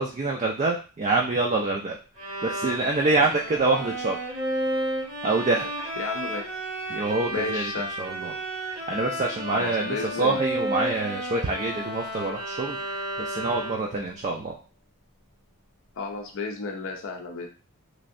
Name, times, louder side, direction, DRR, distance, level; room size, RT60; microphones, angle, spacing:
voice 1, 0.0-2.0 2.4-4.2 5.2-5.7 6.9-7.7 8.0-8.4 8.9-14.6, right 3 dB, 30° right, 1 dB, 0.4 m, -26 dB
Bowed string instrument, 2.2-14.0, right 1 dB, 75° right, 1.6 m, -32 dB
voice 2, 6.0-6.5 7.3-7.9 9.5-10.4 16.0-17.5, left 3 dB, 60° left, 2 dB, 0.5 m, -33 dB
3.1 x 2.6 x 2.5 m, 0.35 s
head